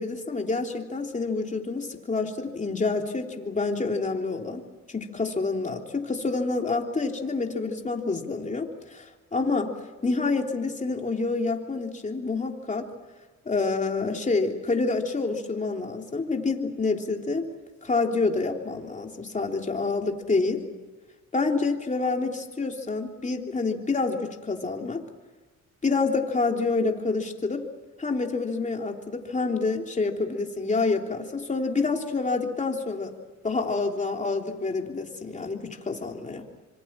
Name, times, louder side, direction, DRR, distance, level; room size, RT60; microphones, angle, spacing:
voice 1, 0.0-4.6 4.9-9.7 10.0-12.9 13.5-17.5 17.8-20.6 21.3-25.0 25.8-27.7 28.0-33.1 33.4-36.5, left 3 dB, 25° left, 2 dB, 3.4 m, -27 dB
26.0 x 24.5 x 7.5 m, 1.3 s
cardioid pair, 90°, 30 cm